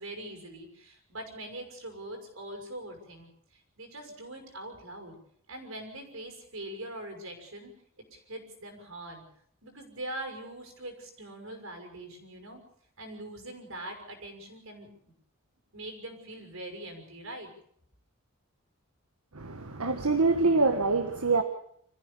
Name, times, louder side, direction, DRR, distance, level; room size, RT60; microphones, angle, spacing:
voice 1, 0.0-3.3 3.8-5.2 5.5-7.7 8.1-9.2 9.6-12.6 13.0-14.9 15.7-17.5, right 1 dB, 65° right, 5 dB, 6.2 m, -42 dB
voice 2, 19.3-21.4, right 3 dB, 85° right, 7 dB, 1.6 m, -25 dB
27.0 x 15.0 x 7.1 m, 0.66 s
head